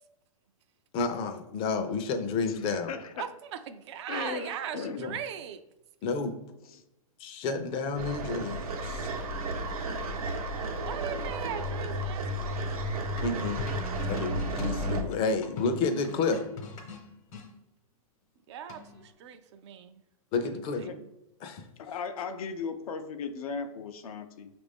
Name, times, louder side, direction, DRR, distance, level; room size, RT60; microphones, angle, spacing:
voice 1, 0.9-2.9 5.0-5.2 6.0-6.3 7.2-9.1 13.2-13.7 14.1-16.4 20.3-20.9 21.4-21.6, left 4 dB, 30° left, 7 dB, 0.5 m, -30 dB
voice 2, 2.4-3.3 4.1-5.0 6.7-6.8 20.9-21.0 21.8-24.5, left 5 dB, 80° left, 7 dB, 0.5 m, -37 dB
voice 3, 3.2-5.6 10.8-12.7 18.5-20.0 20.4-21.1, right 9 dB, 50° right, 10 dB, 0.4 m, -39 dB
sound 1, 8.0-15.0, right 1 dB, 85° right, 0.8 m, -32 dB
sound 2, 13.2-17.5 18.7-19.1, left 4 dB, 60° left, 1.0 m, -43 dB
5.8 x 2.5 x 3.4 m, 0.91 s
hypercardioid pair, 135°, 18 cm